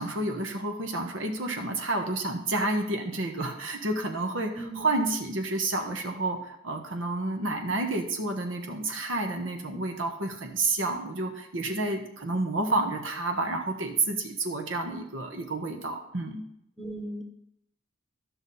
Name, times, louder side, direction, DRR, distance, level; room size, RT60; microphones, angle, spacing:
voice 1, 0.0-16.4, right 2 dB, 70° right, 4 dB, 1.3 m, -30 dB
voice 2, 4.6-4.9 16.8-17.2, right 1 dB, ahead, 2 dB, 1.1 m, -37 dB
13.0 x 6.0 x 4.2 m, 0.76 s
head